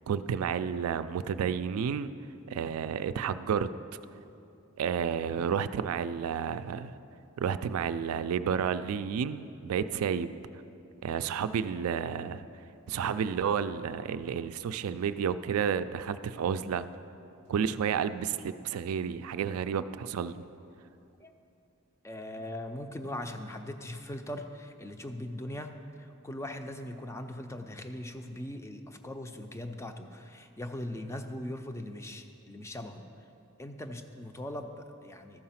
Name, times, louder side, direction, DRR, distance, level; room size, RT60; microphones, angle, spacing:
voice 1, 0.1-2.1 2.5-3.7 4.8-6.9 7.4-10.3 11.0-12.5 12.9-16.9 17.5-20.4, right 7 dB, 85° right, 12 dB, 0.3 m, -31 dB
voice 2, 22.0-25.7 26.0-33.1 33.6-35.4, left 1 dB, 15° left, 6 dB, 0.4 m, -40 dB
13.0 x 4.7 x 5.7 m, 2.7 s
head